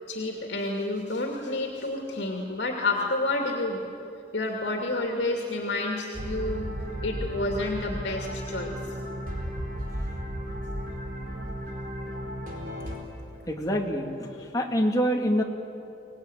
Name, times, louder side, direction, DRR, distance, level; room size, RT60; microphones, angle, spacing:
voice 1, 0.1-3.8 4.3-6.7 7.0-8.9, left 2 dB, 75° left, 1 dB, 2.6 m, -29 dB
sound 1, 6.1-13.0, equal, 50° right, 4.4 m, -34 dB
voice 2, 13.5-15.4, equal, 20° left, 1 dB, 2.2 m, -26 dB
24.5 x 18.5 x 10.0 m, 2.8 s
head